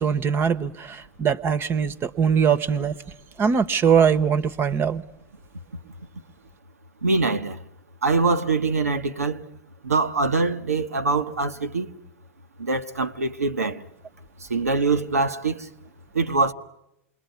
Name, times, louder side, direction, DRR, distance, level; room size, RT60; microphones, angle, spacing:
voice 1, 0.0-3.0 3.4-5.0, right 7 dB, 30° right, 1.0 m, -21 dB
voice 2, 7.0-7.6 8.0-9.4 9.8-11.9 12.6-13.8 14.5-15.7 16.1-16.5, right 3 dB, 90° right, 1.2 m, -23 dB
28.0 x 21.5 x 9.4 m
hypercardioid pair, 100°, 8 cm